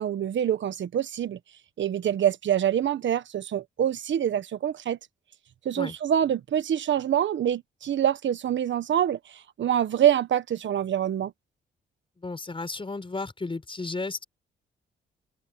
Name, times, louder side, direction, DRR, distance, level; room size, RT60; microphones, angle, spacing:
voice 1, 0.0-1.4 1.8-5.0 5.6-11.3, right 10 dB, 65° right, 1.3 m, -25 dB
voice 2, 12.2-14.2, left 3 dB, 25° left, 5.0 m, -33 dB
cardioid pair, 80°, 21 cm